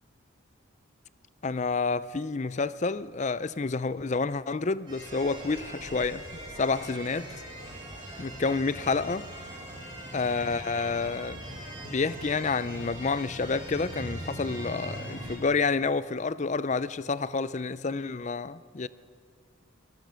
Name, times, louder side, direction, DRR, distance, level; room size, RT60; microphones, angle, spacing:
voice 1, 1.4-6.2 6.6-7.4 8.2-9.2 10.1-11.4 11.8-18.9, left 4 dB, 35° left, 0.5 m, -29 dB
sound 1, 4.9-15.4, right 1 dB, 25° right, 5.8 m, -41 dB
22.5 x 20.0 x 6.3 m
head